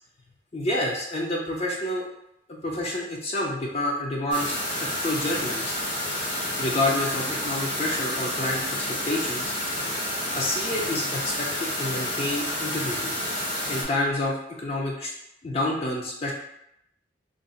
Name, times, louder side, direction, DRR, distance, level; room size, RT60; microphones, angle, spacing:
voice 1, 0.5-2.0 2.5-5.7 6.6-8.6 9.1-9.5 10.3-13.1 13.7-15.1 15.4-16.3, left 1 dB, 35° left, -2 dB, 0.4 m, -28 dB
sound 1, 4.3-13.8, left 1 dB, 80° left, 1.3 m, -29 dB
2.5 x 2.0 x 3.8 m, 0.78 s
head